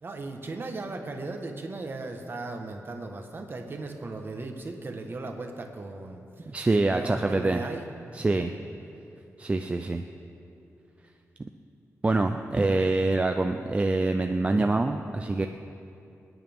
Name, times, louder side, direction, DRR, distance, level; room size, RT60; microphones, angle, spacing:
voice 1, 0.0-6.5 6.9-7.8 8.2-8.6, right 3 dB, 40° right, 4 dB, 1.3 m, -37 dB
voice 2, 6.5-7.6 8.1-8.5 9.4-10.0 12.0-15.5, right 2 dB, 20° right, 5 dB, 0.4 m, -25 dB
26.0 x 9.5 x 3.6 m, 2.7 s
wide cardioid pair, 130°, 6 cm